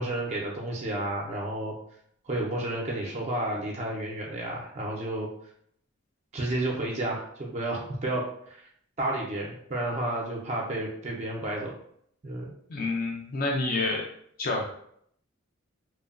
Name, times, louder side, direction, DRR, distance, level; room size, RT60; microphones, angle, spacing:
voice 1, 0.0-1.7 2.3-5.3 6.3-8.6 9.0-11.7 12.2-12.5, right 1 dB, 35° right, -2 dB, 0.4 m, -31 dB
voice 2, 12.7-14.0 14.4-14.6, left 3 dB, 45° left, -2 dB, 0.4 m, -28 dB
3.1 x 2.1 x 2.4 m, 0.67 s
head